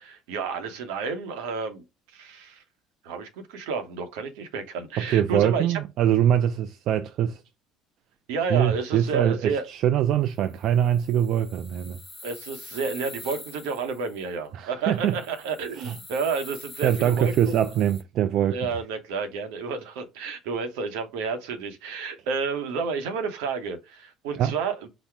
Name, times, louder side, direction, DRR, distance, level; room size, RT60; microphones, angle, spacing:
voice 1, 0.0-1.8 2.1-2.6 3.0-5.8 8.3-9.7 12.2-17.5 18.5-24.9, right 5 dB, 85° right, 0.9 m, -31 dB
voice 2, 5.0-7.4 8.5-12.0 14.5-15.1 15.8-15.9 16.8-18.6 24.3-24.5, right 10 dB, 65° right, 0.3 m, -23 dB
sound 1, 10.3-14.3 15.0-18.0, left 3 dB, 15° left, 0.8 m, -45 dB
4.1 x 2.1 x 4.5 m
supercardioid pair, 90°, 0 cm